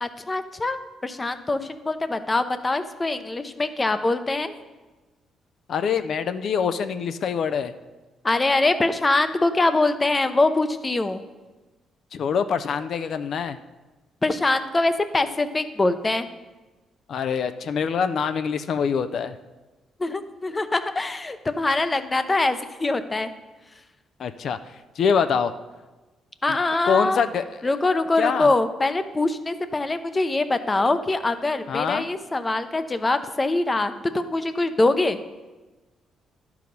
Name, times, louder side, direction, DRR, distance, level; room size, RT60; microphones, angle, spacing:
voice 1, 0.0-4.5 8.2-11.2 14.2-16.3 20.0-23.3 26.4-27.2 27.6-35.2, left 2 dB, 25° left, 11 dB, 0.6 m, -23 dB
voice 2, 5.7-7.7 12.1-13.6 17.1-19.4 24.2-25.5 26.5-26.6 26.9-27.6 28.2-28.5 31.7-32.0, left 6 dB, 65° left, 10 dB, 0.4 m, -25 dB
11.0 x 4.8 x 5.3 m, 1.2 s
cardioid pair, 90°, 0 cm